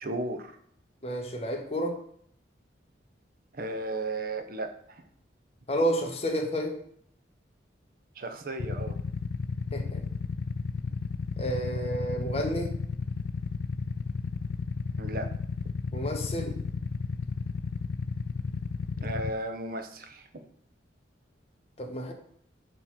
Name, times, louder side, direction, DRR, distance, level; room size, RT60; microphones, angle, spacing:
voice 1, 0.0-0.5 3.5-5.0 8.2-9.0 15.0-15.3 19.0-20.4, right 2 dB, 50° right, 7 dB, 0.7 m, -35 dB
voice 2, 1.0-1.9 5.7-6.7 9.7-10.0 11.4-12.7 15.9-16.5 21.8-22.1, right 1 dB, 35° left, 2 dB, 1.0 m, -30 dB
Motorcycle / Idling, 8.6-19.3, left 5 dB, 60° left, 0.3 m, -33 dB
6.5 x 3.2 x 5.7 m, 0.66 s
head